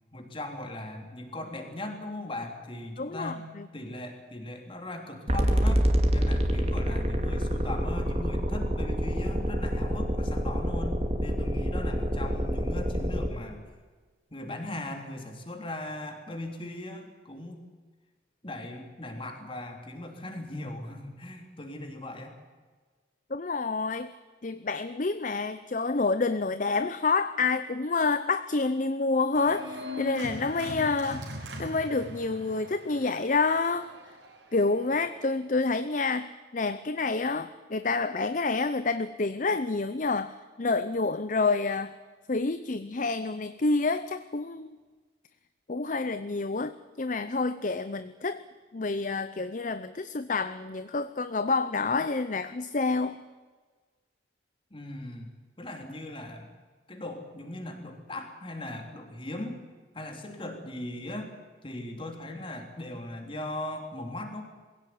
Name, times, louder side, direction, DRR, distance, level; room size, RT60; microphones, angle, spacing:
voice 1, 0.1-3.5 3.7-5.8 6.1-13.7 14.3-17.7 18.4-22.3 54.7-55.3 55.6-56.5 56.9-59.6 59.9-61.3 61.6-64.4, left 1 dB, 30° left, 4 dB, 3.4 m, -39 dB
voice 2, 3.0-3.7 23.3-24.1 24.4-33.9 34.5-42.0 42.3-44.8 45.7-48.4 48.7-53.2, left 3 dB, 45° left, 12 dB, 0.7 m, -28 dB
sound 1, 5.3-13.3, equal, 35° right, 2.5 m, -27 dB
Organ, 29.4-35.0, left 2 dB, 85° right, 4.8 m, -40 dB
21.5 x 16.5 x 9.5 m, 1.4 s
head